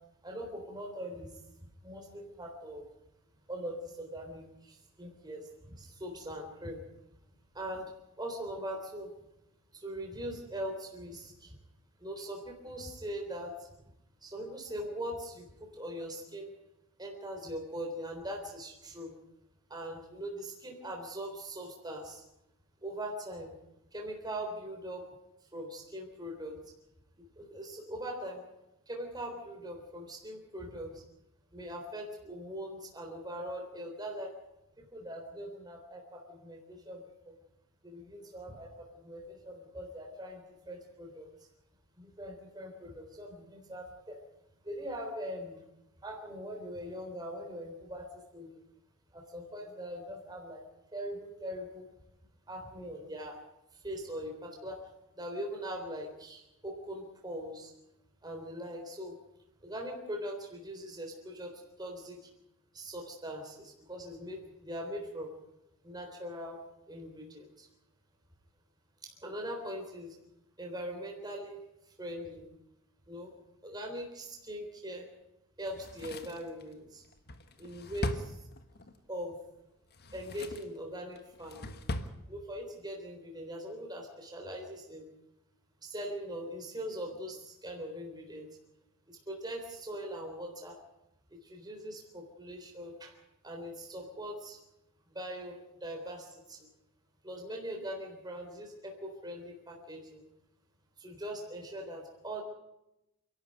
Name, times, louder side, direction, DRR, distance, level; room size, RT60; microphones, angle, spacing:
voice 1, 0.2-1.4 1.8-2.9 3.5-6.8 7.5-7.9 8.2-9.1 9.7-11.6 12.0-13.7 14.2-16.5 17.0-19.1 19.7-22.2 22.8-23.5 23.9-25.1 25.5-26.6 27.2-28.4 28.9-31.0 31.5-34.3 34.8-37.3 37.8-41.3 42.0-44.2 44.6-45.6 46.0-48.5 49.1-50.6 50.9-51.9 52.5-53.4 53.8-54.9 55.2-57.7 58.2-59.2 59.6-62.2 62.7-65.3 65.8-66.6 66.9-67.7 69.0-70.2 70.6-71.6 71.9-72.5 73.1-73.3 73.6-75.1 75.6-77.0 77.6-78.4 79.1-79.4 80.1-81.7 82.3-85.0 85.8-88.5 89.1-90.8 91.3-93.2 93.4-94.6 95.1-96.7 97.2-100.2 101.0-102.4, equal, 20° right, 1 dB, 3.8 m, -41 dB
Drawer open or close, 75.7-79.0 79.8-80.8 81.2-82.2 82.5-82.6, left 1 dB, 45° left, 1.5 m, -39 dB
28.0 x 12.0 x 9.1 m, 0.89 s
head